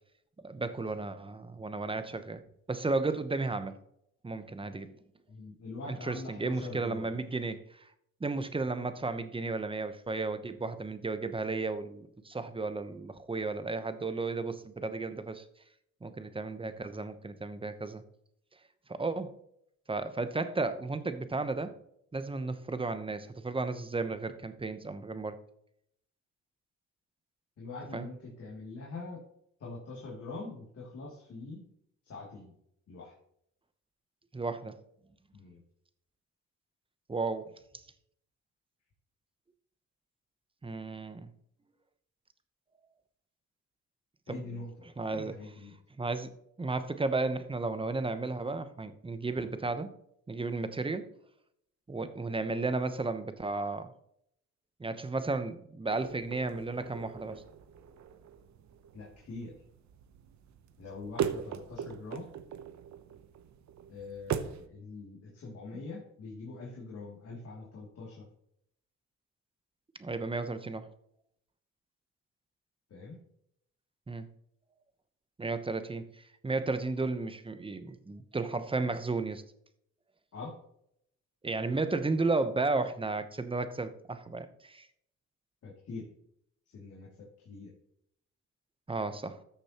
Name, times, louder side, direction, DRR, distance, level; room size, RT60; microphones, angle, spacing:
voice 1, 0.4-2.4 2.7-3.8 4.2-4.9 5.9-7.6 8.2-15.4 16.0-18.0 18.9-19.4 19.9-21.7 22.1-25.4 27.9-28.1 34.3-34.8 37.1-37.5 40.6-41.3 44.3-44.6 45.0-45.4 46.0-49.9 50.3-51.1 51.9-53.9 54.8-57.4 70.0-70.9 74.1-74.3 75.4-76.1 76.4-79.4 81.4-84.9 88.9-89.4, right 3 dB, 20° right, 11 dB, 0.9 m, -33 dB
voice 2, 5.3-7.2 27.6-29.2 29.6-31.6 32.0-32.5 32.9-33.1 35.3-35.6 44.3-45.7 58.9-59.5 60.8-62.3 63.9-68.2 72.9-73.2 80.3-80.5 85.6-86.1 86.7-87.7, left 3 dB, 55° left, -4 dB, 2.8 m, -44 dB
sound 1, 55.9-64.7, right 8 dB, 65° right, 0.8 m, -40 dB
13.5 x 6.9 x 3.0 m, 0.72 s
cardioid pair, 90°, 30 cm